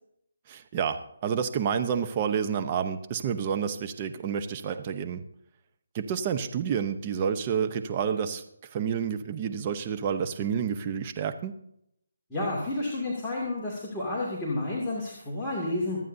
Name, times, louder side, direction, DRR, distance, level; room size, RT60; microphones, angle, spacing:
voice 1, 0.5-5.2 5.9-8.4 8.7-11.5, right 7 dB, 30° right, 8 dB, 0.8 m, -29 dB
voice 2, 12.3-16.0, left 2 dB, 5° left, -8 dB, 2.4 m, -30 dB
25.5 x 9.2 x 2.7 m, 0.75 s
figure-of-eight pair, 155°, 0 cm